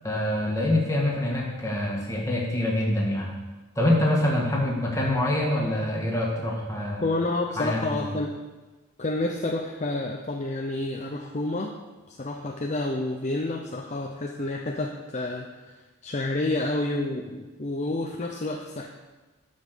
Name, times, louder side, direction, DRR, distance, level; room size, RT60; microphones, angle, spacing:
voice 1, 0.0-3.3 3.8-7.0 7.6-8.1, left 1 dB, 15° left, -2 dB, 1.7 m, -25 dB
voice 2, 7.0-8.3 9.0-11.7 12.1-18.9, left 2 dB, 35° left, 2 dB, 0.6 m, -29 dB
10.0 x 5.4 x 6.7 m, 1.2 s
head